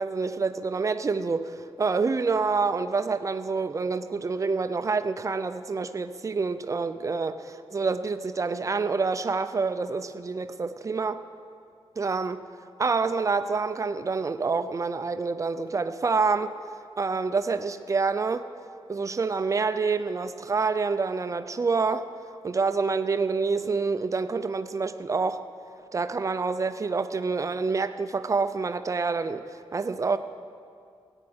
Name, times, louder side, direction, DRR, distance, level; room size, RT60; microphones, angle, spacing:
voice 1, 0.0-11.2 12.0-12.4 12.8-16.5 17.0-18.5 18.9-22.1 22.4-25.4 25.9-29.4 29.7-30.2, right 4 dB, 35° right, 11 dB, 0.5 m, -27 dB
14.5 x 9.7 x 7.9 m, 2.3 s
wide cardioid pair, 175°, 10 cm